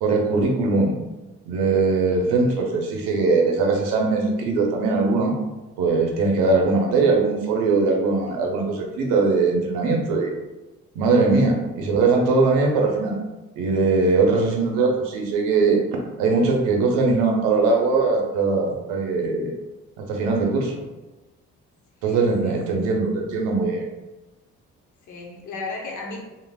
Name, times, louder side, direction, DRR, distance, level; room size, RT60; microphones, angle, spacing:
voice 1, 0.0-1.0 1.4-5.4 5.8-10.4 10.9-13.2 13.6-15.8 16.2-19.5 20.0-20.8 22.0-23.9, right 3 dB, 85° right, 1 dB, 0.6 m, -21 dB
voice 2, 22.0-22.8 25.1-26.2, left 3 dB, 65° left, 0 dB, 0.7 m, -36 dB
3.2 x 2.1 x 2.2 m, 1.1 s
supercardioid pair, 55°, 32 cm